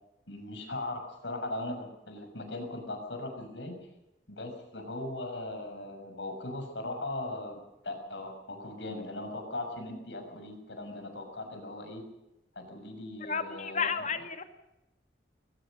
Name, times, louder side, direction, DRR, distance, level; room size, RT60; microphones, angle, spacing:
voice 1, 0.3-3.7 4.3-12.0 12.5-14.1, left 2 dB, 80° left, 6 dB, 6.5 m, -39 dB
voice 2, 13.2-14.5, left 5 dB, 45° left, 7 dB, 2.3 m, -32 dB
22.0 x 19.5 x 6.7 m, 0.93 s
head